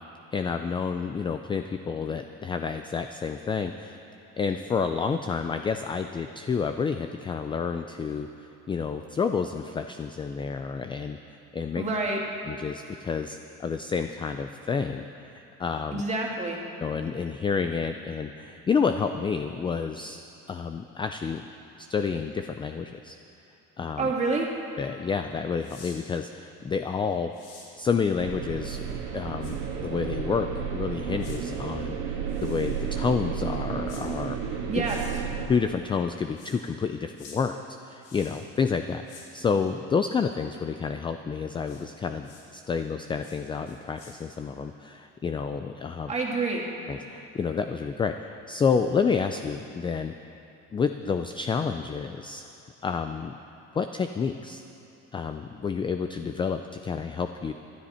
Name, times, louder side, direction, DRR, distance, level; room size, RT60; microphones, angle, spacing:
voice 1, 0.3-4.0 4.4-11.2 11.5-11.8 12.5-15.0 15.3-16.0 16.8-20.2 20.5-21.4 21.8-23.2 23.8-24.1 24.8-27.3 27.8-34.8 35.5-46.1 46.9-50.1 50.7-52.5 52.8-53.3 53.7-54.6 55.1-57.5, left 5 dB, 15° left, 7 dB, 0.4 m, -29 dB
voice 2, 11.8-12.2 15.9-16.6 24.0-24.5 34.7-35.0 46.1-46.7, right 3 dB, 20° right, -2 dB, 2.3 m, -27 dB
sound 1, 25.6-26.0 27.3-27.7 29.4-29.5 31.2-31.4 32.3-32.9 33.9-34.0 34.8-35.0 36.3-36.6 37.1-37.4 38.0-38.5 39.0-39.2 41.6-41.8 42.2-42.4 43.2-43.4 43.6-44.1, left 4 dB, 80° left, 4.4 m, -49 dB
sound 2, 28.2-35.5, right 6 dB, 80° right, 2.5 m, -32 dB
23.5 x 12.5 x 4.3 m, 2.8 s
cardioid pair, 145°, 31 cm